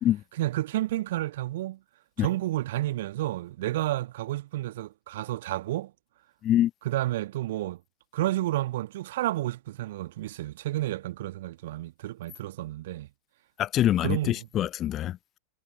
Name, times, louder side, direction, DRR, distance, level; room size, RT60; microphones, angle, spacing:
voice 1, 0.4-1.8 2.2-5.9 6.9-7.8 8.1-13.1 14.0-14.4, right 15 dB, 55° right, 2.0 m, -30 dB
voice 2, 13.6-15.4, left 12 dB, 30° left, 0.7 m, -25 dB
figure-of-eight pair, 90°, 0 cm